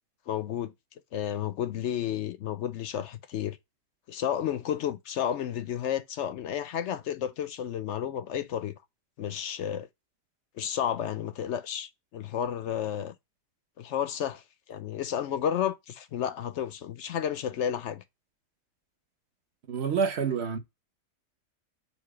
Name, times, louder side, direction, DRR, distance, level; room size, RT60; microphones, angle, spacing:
voice 1, 0.3-0.7 1.1-3.6 4.1-8.7 9.2-9.9 10.6-13.1 13.8-14.4 14.7-18.0, left 9 dB, 65° left, 0.7 m, -31 dB
voice 2, 19.7-20.6, right 6 dB, 50° right, 1.1 m, -27 dB
7.1 x 2.7 x 4.9 m
omnidirectional pair, 1.6 m